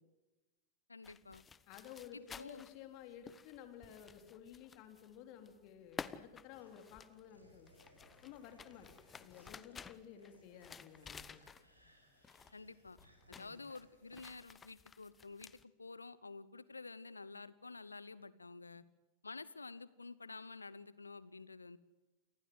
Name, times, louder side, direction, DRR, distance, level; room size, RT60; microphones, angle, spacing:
voice 1, 0.9-1.4 2.1-2.6 12.5-13.0 13.3-18.8 19.2-21.8, left 3 dB, 80° left, 19 dB, 0.9 m, -50 dB
sound 1, 1.0-5.2 5.5-11.9 12.2-12.6 12.9-15.6, left 6 dB, 20° left, 0.9 m, -53 dB
voice 2, 1.7-7.7 8.2-8.9 9.2-11.4 13.3-13.6, left 9 dB, 45° left, 7 dB, 3.6 m, -54 dB
sound 2, 6.6-14.2, equal, 85° right, 5.5 m, -68 dB
28.5 x 19.5 x 8.0 m, 1.1 s
figure-of-eight pair, 90°, 0 cm